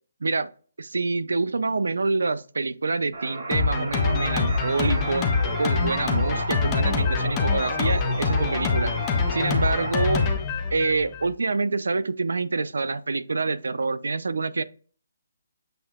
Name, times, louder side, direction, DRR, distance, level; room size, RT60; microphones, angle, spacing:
voice 1, 0.8-5.3 5.6-8.9 9.3-10.3 10.7-14.6, right 3 dB, 80° right, 0.4 m, -26 dB
sound 1, 3.1-10.3, right 2 dB, 55° right, 1.3 m, -34 dB
Drum kit, 3.5-11.3, left 5 dB, 15° left, 0.4 m, -25 dB
7.6 x 2.7 x 2.3 m
hypercardioid pair, 175°, 0 cm